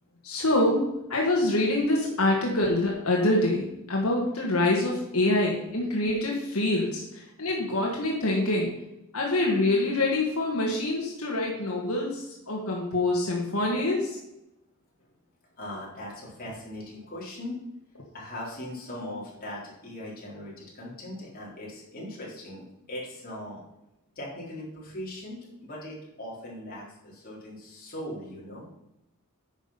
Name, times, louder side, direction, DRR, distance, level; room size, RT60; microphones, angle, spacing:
voice 1, 0.2-8.7 9.1-14.2, left 2 dB, 85° left, -2 dB, 1.9 m, -25 dB
voice 2, 15.6-17.6 18.1-23.6 24.2-28.7, left 1 dB, 45° left, -4 dB, 3.7 m, -39 dB
9.7 x 6.2 x 5.7 m, 0.90 s
head